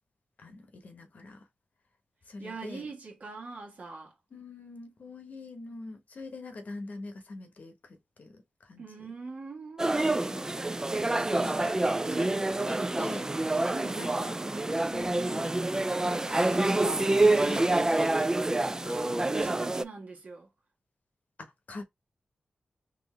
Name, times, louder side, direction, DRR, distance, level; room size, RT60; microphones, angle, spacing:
voice 1, 0.4-1.4 2.3-2.9 4.3-9.1 10.0-11.8 12.1-12.3 12.7-13.3 14.0-14.4 14.9-15.5 16.0-18.1 18.6-19.0 19.3-19.5 21.4-21.8, left 2 dB, 65° left, 1.0 m, -44 dB
voice 2, 2.4-4.1 8.8-10.1 12.0-12.4 13.7-14.0 18.8-20.5, right 4 dB, 65° right, 1.4 m, -42 dB
sound 1, 9.8-19.8, right 2 dB, 20° right, 0.3 m, -27 dB
3.7 x 2.5 x 3.1 m
cardioid pair, 45°, 3 cm